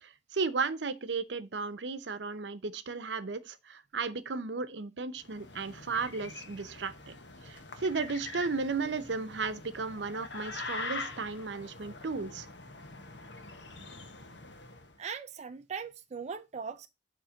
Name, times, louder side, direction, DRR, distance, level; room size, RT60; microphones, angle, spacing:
voice 1, 0.0-7.1 7.4-12.5, right 4 dB, 75° right, 0.7 m, -35 dB
sound 1, 5.2-14.9, left 3 dB, 80° left, 1.2 m, -44 dB
voice 2, 15.0-16.9, right 6 dB, 40° right, 0.5 m, -39 dB
7.2 x 3.3 x 6.2 m
head